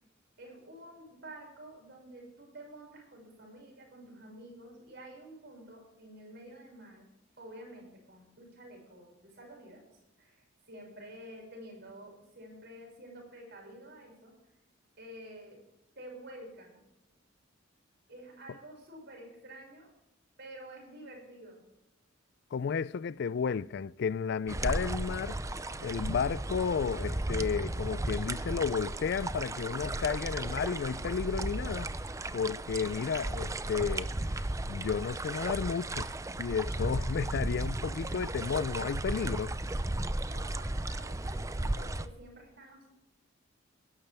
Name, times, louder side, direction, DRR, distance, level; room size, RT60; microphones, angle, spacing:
voice 1, 0.4-7.1 7.4-9.8 10.2-14.4 15.0-15.6 16.0-16.8 18.1-19.9 20.4-21.6 40.2-42.9, right 1 dB, 60° right, 6.2 m, -50 dB
voice 2, 22.5-25.4 25.8-31.9 32.3-36.1 36.4-39.5, left 6 dB, 60° left, 0.4 m, -32 dB
sound 1, 24.5-42.1, right 2 dB, 15° right, 0.5 m, -35 dB
19.5 x 11.5 x 3.5 m
head